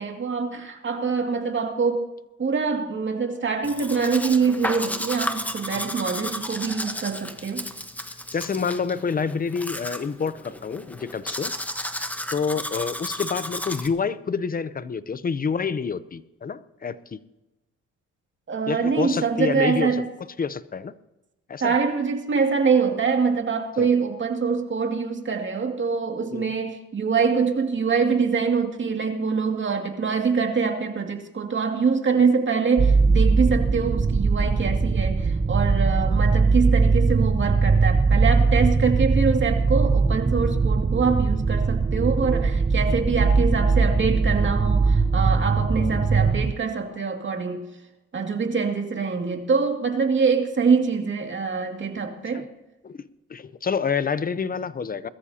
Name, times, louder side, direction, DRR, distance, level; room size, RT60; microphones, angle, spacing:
voice 1, 0.0-2.1 2.4-7.7 18.5-20.1 21.6-47.7 48.1-52.5, right 5 dB, 40° right, 3 dB, 2.3 m, -24 dB
Domestic sounds home sounds, 3.6-13.9, left 1 dB, 5° left, 1.2 m, -33 dB
voice 2, 8.3-11.5 12.3-17.2 18.7-20.0 20.4-20.9 21.5-21.7 23.8-23.9 26.3-26.5 45.8-45.9 52.3-52.5 52.8-55.1, left 5 dB, 30° left, 15 dB, 0.7 m, -28 dB
sound 1, 32.8-46.5, right 4 dB, 20° right, 0.6 m, -20 dB
21.0 x 13.5 x 2.9 m, 1.0 s
cardioid pair, 90°, 30 cm